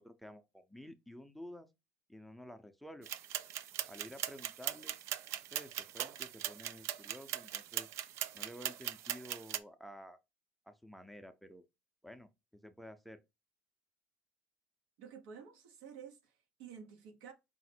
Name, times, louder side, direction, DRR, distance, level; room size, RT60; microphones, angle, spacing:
voice 1, 0.0-1.7 2.1-3.1 3.9-4.9 5.5-7.9 8.3-10.2 10.7-11.6 12.0-13.2, equal, ahead, 0.5 m, -51 dB
sound 1, 3.0-9.6, right 12 dB, 65° right, 0.4 m, -40 dB
voice 2, 15.0-17.3, right 7 dB, 80° right, 1.0 m, -51 dB
4.9 x 2.0 x 4.3 m
supercardioid pair, 100°, 5 cm